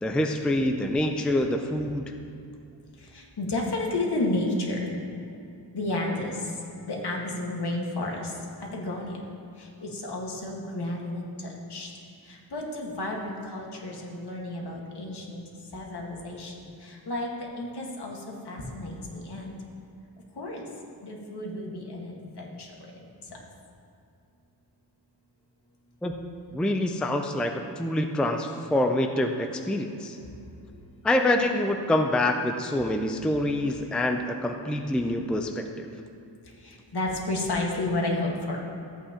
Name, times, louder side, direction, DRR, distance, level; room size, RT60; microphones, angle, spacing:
voice 1, 0.0-2.1 26.0-30.2 31.0-35.9, left 1 dB, ahead, 4 dB, 0.4 m, -26 dB
voice 2, 3.0-5.0 5.7-9.2 9.6-11.9 12.2-15.4 15.7-19.5 20.3-20.7 21.0-22.7 23.2-23.4 30.7-30.8 36.4-38.6, left 2 dB, 65° left, -1 dB, 1.7 m, -32 dB
14.5 x 8.3 x 2.9 m, 2.7 s
wide cardioid pair, 120°, 43 cm